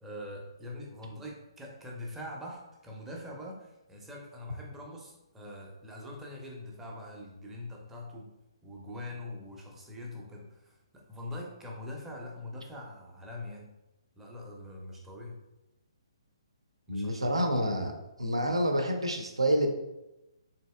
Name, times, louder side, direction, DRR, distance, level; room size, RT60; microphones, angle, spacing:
voice 1, 0.0-8.3 8.6-13.7 14.2-15.4 16.9-17.3, left 1 dB, 10° right, -2 dB, 0.6 m, -43 dB
voice 2, 16.9-17.9 18.2-19.7, equal, 75° right, 3 dB, 0.6 m, -28 dB
4.0 x 2.7 x 2.2 m, 0.96 s
figure-of-eight pair, 130°, 3 cm